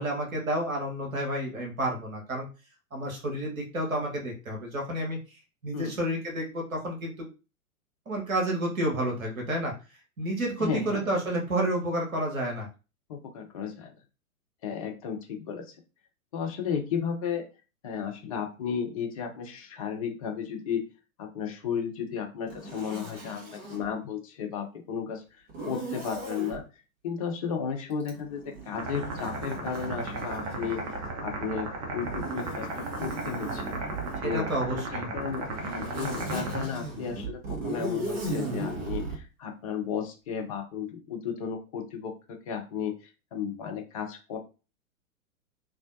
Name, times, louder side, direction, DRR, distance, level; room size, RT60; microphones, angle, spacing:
voice 1, 0.0-2.5 2.9-5.2 5.6-7.3 8.1-9.7 10.2-12.7 34.2-35.1, right 1 dB, 70° right, 0 dB, 1.1 m, -30 dB
voice 2, 10.6-11.0 13.1-13.9 14.6-15.7 16.3-17.4 17.8-20.8 21.2-25.2 25.6-26.6 27.0-30.8 31.2-32.7 33.0-33.7 34.2-42.1 42.5-42.9 43.3-44.4, left 7 dB, 25° left, 3 dB, 0.4 m, -34 dB
Zipper (clothing), 22.5-23.9 25.5-26.6 28.0-31.2 32.0-34.3 35.2-39.2, right 2 dB, 45° right, 1.2 m, -37 dB
sound 1, 28.7-36.6, right 2 dB, 25° right, 0.5 m, -35 dB
2.6 x 2.1 x 2.5 m, 0.31 s
figure-of-eight pair, 105°, 43 cm